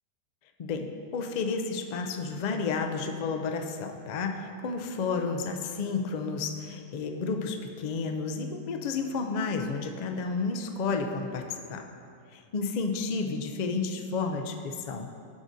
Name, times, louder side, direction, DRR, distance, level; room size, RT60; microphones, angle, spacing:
voice 1, 0.6-11.9 12.3-15.1, left 4 dB, 80° left, 5 dB, 0.3 m, -31 dB
12.5 x 6.2 x 2.6 m, 2.5 s
omnidirectional pair, 1.4 m